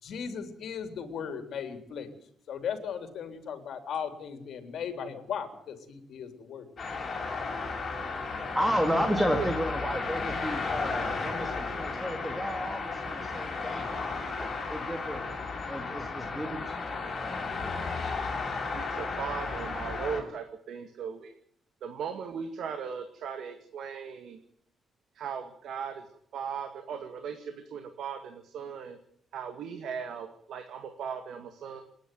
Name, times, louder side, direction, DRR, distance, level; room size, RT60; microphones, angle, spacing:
voice 1, 0.0-2.1 2.5-6.7, left 7 dB, 65° left, 8 dB, 3.6 m, -37 dB
sound 1, 6.8-20.2, left 4 dB, 35° left, 6.7 m, -34 dB
voice 2, 8.5-15.4 15.7-16.8, equal, 5° right, 5 dB, 2.2 m, -32 dB
voice 3, 18.7-21.3 21.8-24.4 25.2-26.1 26.3-29.0 29.3-31.8, right 7 dB, 70° right, 7 dB, 2.1 m, -38 dB
28.5 x 10.5 x 9.3 m, 0.64 s
cardioid pair, 150°, 0 cm